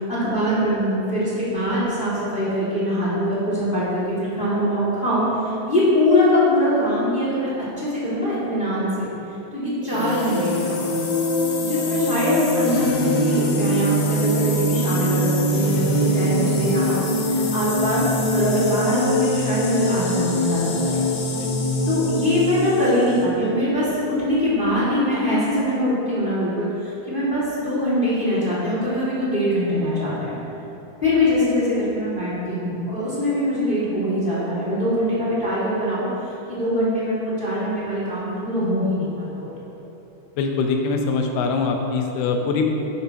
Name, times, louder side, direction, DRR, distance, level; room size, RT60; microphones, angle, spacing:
voice 1, 0.1-7.5 7.8-9.1 9.5-11.0 11.6-17.0 17.3-18.0 18.3-21.0 21.9-30.4 31.0-36.0 36.5-39.5, equal, 20° left, -8 dB, 1.6 m, -23 dB
sound 1, 9.8-23.2, left 1 dB, 70° left, 1.5 m, -23 dB
voice 2, 40.4-42.7, left 4 dB, 85° left, 3 dB, 2.8 m, -23 dB
11.0 x 10.5 x 2.9 m, 3.0 s
omnidirectional pair, 4.4 m